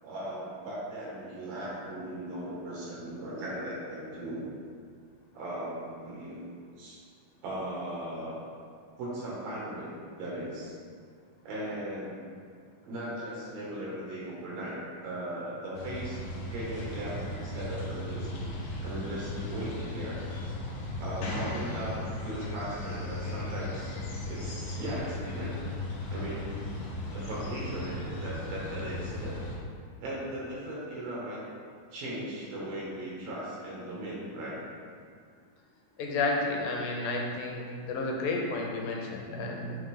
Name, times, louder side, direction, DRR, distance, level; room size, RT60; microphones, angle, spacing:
voice 1, 0.0-4.4 5.3-6.4 6.8-7.0 7.4-8.4 9.0-9.9 10.2-10.8 11.4-12.2 12.8-16.2 16.5-18.4 18.8-20.2 21.0-24.0 24.3-25.5 26.1-26.5 27.1-29.4 30.0-31.4 31.9-34.6, right 1 dB, 80° right, -6 dB, 3.3 m, -38 dB
sound 1, 15.7-29.6, left 1 dB, 65° left, 2.0 m, -36 dB
voice 2, 36.0-39.8, left 3 dB, 85° left, 0 dB, 2.5 m, -31 dB
8.8 x 3.7 x 3.4 m, 2.2 s
omnidirectional pair, 4.2 m